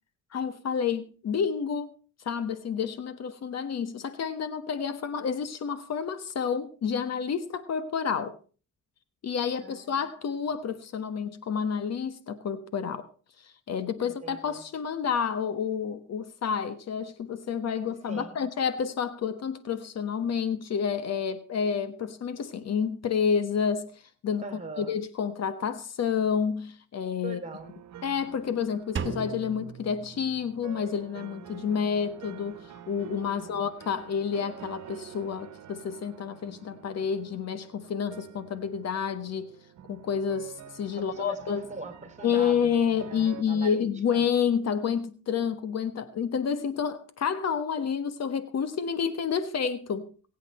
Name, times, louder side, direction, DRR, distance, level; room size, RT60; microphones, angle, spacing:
voice 1, 0.3-1.9 2.2-8.3 9.2-13.1 13.4-24.4 24.8-27.4 28.0-39.5 39.9-41.6 42.2-50.1, left 7 dB, 60° left, 1.4 m, -29 dB
voice 2, 9.6-10.1 14.0-14.6 18.1-18.4 24.4-24.9 27.2-27.7 33.3-33.7 40.9-43.9 44.1-44.3, right 3 dB, 25° right, 3.0 m, -42 dB
sound 1, 27.5-43.4, right 10 dB, 65° right, 1.3 m, -48 dB
Drum, 29.0-30.9, right 6 dB, 40° right, 1.6 m, -37 dB
22.0 x 8.5 x 4.3 m
cardioid pair, 90°, 30 cm